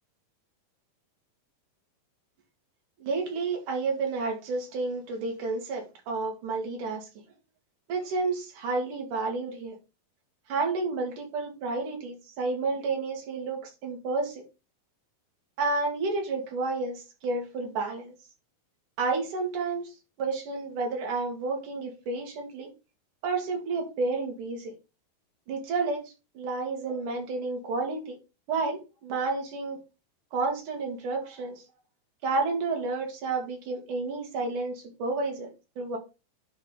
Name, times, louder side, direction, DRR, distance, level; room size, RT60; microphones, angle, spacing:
voice 1, 3.0-7.1 7.9-9.8 10.5-14.4 15.6-18.1 19.0-22.7 23.2-24.7 25.5-28.2 28.5-29.8 30.3-31.6 32.2-36.0, right 3 dB, 65° right, 3.3 m, -31 dB
10.5 x 3.7 x 3.8 m
omnidirectional pair, 4.0 m